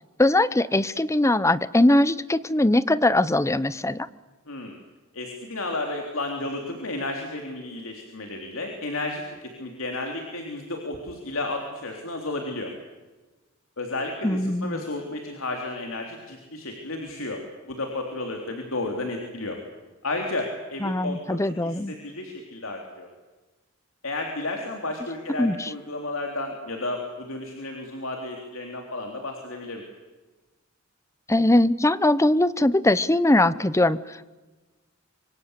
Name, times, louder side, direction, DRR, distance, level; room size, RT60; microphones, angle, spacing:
voice 1, 0.2-4.1 14.2-14.8 20.8-21.9 25.4-25.7 31.3-34.3, left 1 dB, 15° left, 17 dB, 0.8 m, -21 dB
voice 2, 4.5-4.8 5.1-12.7 13.8-17.4 17.7-19.6 20.0-23.1 24.0-29.8, left 2 dB, 70° left, 2 dB, 3.6 m, -32 dB
25.5 x 25.5 x 8.3 m, 1.2 s
head